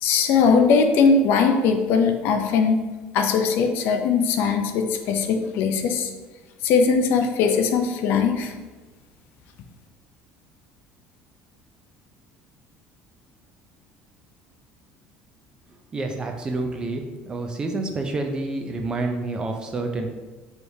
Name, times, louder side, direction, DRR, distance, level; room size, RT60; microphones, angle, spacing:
voice 1, 0.0-2.8 3.1-6.1 6.6-8.5, left 5 dB, 60° left, 5 dB, 0.4 m, -20 dB
voice 2, 15.9-17.0 17.3-20.1, right 2 dB, 20° right, 3 dB, 0.4 m, -28 dB
4.7 x 3.3 x 2.7 m, 1.2 s
cardioid pair, 165°, 4 cm